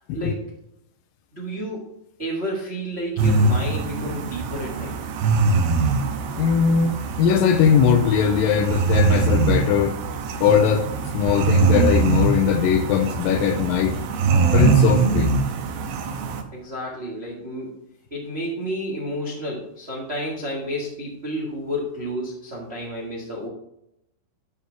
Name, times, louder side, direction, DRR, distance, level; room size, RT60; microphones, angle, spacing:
voice 1, 0.1-0.5 1.3-1.9 2.2-4.9 16.5-17.8 18.1-23.5, equal, 45° right, -3 dB, 0.8 m, -31 dB
sound 1, 3.2-16.4, right 4 dB, 85° right, 2.8 m, -22 dB
voice 2, 6.4-10.0 10.4-10.9 11.1-14.0 14.5-15.3, left 7 dB, 80° left, 7 dB, 2.2 m, -20 dB
12.0 x 4.4 x 4.7 m, 0.80 s
omnidirectional pair, 4.3 m